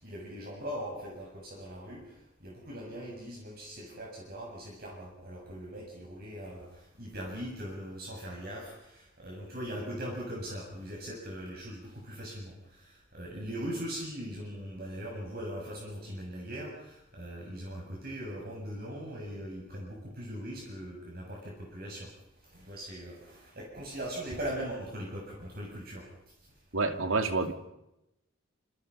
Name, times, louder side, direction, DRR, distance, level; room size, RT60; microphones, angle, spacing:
voice 1, 0.0-22.1 22.5-26.0, equal, 45° right, -2 dB, 7.2 m, -40 dB
voice 2, 26.7-27.5, right 3 dB, 80° right, 7 dB, 2.7 m, -28 dB
28.0 x 28.0 x 5.6 m, 0.87 s
head